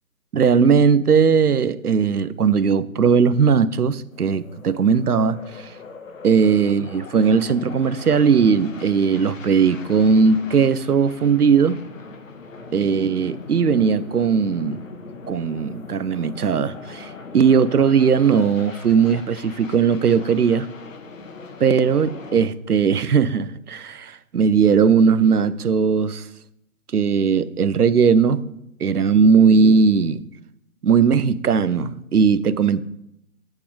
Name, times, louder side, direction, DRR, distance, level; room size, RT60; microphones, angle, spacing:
voice 1, 0.3-5.7 6.2-11.8 12.7-14.8 15.3-20.7 21.6-26.2 26.9-28.4 28.8-30.2 30.8-32.8, right 6 dB, 85° right, 0.7 m, -18 dB
sound 1, 4.1-22.5, left 4 dB, 60° left, 1.3 m, -41 dB
9.9 x 8.5 x 3.2 m
figure-of-eight pair, 145°, 44 cm